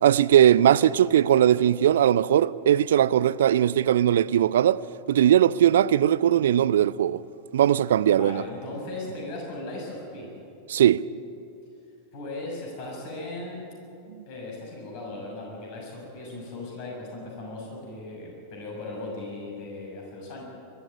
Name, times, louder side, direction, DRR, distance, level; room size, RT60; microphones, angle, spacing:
voice 1, 0.0-4.8 5.1-7.2 7.5-8.4 10.7-11.0, right 10 dB, 60° right, 0.5 m, -19 dB
voice 2, 8.1-10.3 12.1-13.6 14.3-20.4, left 2 dB, 45° left, 6.7 m, -37 dB
22.5 x 14.0 x 9.8 m
figure-of-eight pair, 90°, 0 cm